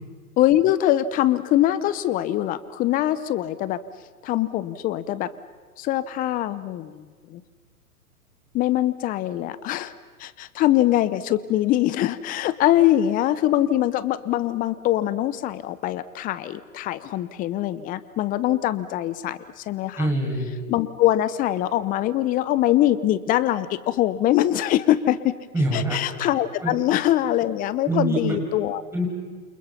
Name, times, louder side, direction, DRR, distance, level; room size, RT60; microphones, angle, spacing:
voice 1, 0.4-3.8 4.2-5.3 5.8-7.0 7.3-7.4 8.5-9.9 10.2-20.1 20.7-25.3 25.7-28.8, left 13 dB, 20° left, 16 dB, 0.8 m, -23 dB
voice 2, 20.0-20.5 25.5-26.0 26.6-26.7 27.9-28.4 28.9-29.1, right 1 dB, 5° right, -2 dB, 6.5 m, -24 dB
28.5 x 28.5 x 5.8 m, 1.4 s
hypercardioid pair, 125°, 45 cm